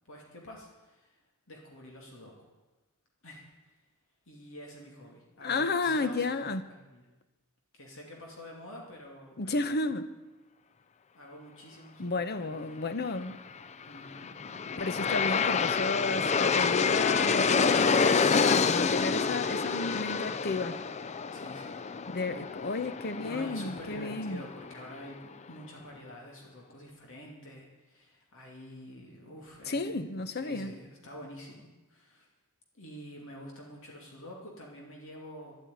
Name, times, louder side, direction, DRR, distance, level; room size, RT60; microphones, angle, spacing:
voice 1, 0.1-1.2 1.5-2.3 3.2-3.8 4.3-6.4 6.7-7.1 7.7-9.8 11.1-12.7 13.8-14.3 19.0-20.1 21.3-22.2 23.2-30.0 30.3-32.3 32.8-35.6, equal, 65° left, -1 dB, 2.7 m, -48 dB
voice 2, 5.4-6.7 9.4-10.1 12.0-13.4 14.8-20.8 22.1-24.4 29.7-30.7, left 3 dB, 45° left, 11 dB, 0.9 m, -32 dB
Aircraft, 13.9-25.0, left 5 dB, 30° left, 0.4 m, -28 dB
12.0 x 8.9 x 9.5 m, 1.1 s
head